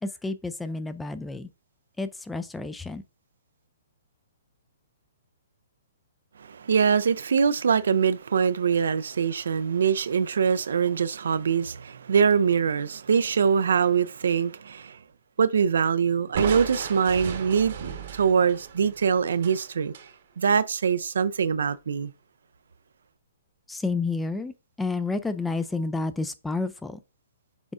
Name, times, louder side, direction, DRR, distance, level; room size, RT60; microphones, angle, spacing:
voice 1, 0.0-1.5 2.0-3.0 23.7-27.0, left 3 dB, 5° left, 0.3 m, -30 dB
voice 2, 6.4-15.0 15.4-19.9 20.4-22.1, right 6 dB, 75° right, 0.4 m, -23 dB
Crushing, 16.3-20.1, right 7 dB, 60° right, 1.0 m, -35 dB
6.2 x 3.4 x 2.5 m
hypercardioid pair, 140°, 0 cm